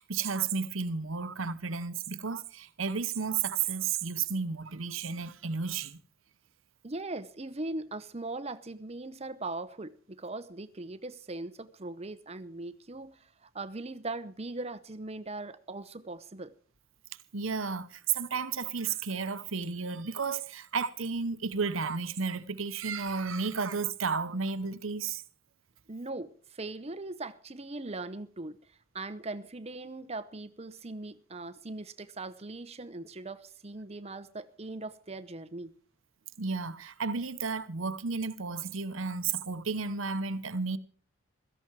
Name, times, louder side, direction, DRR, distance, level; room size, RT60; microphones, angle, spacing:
voice 1, 0.0-6.0 17.3-25.2 36.4-40.8, right 5 dB, 75° right, 1.0 m, -32 dB
voice 2, 6.8-16.5 25.9-28.6 28.9-35.7, right 2 dB, 30° right, 0.9 m, -40 dB
16.5 x 14.0 x 4.7 m
head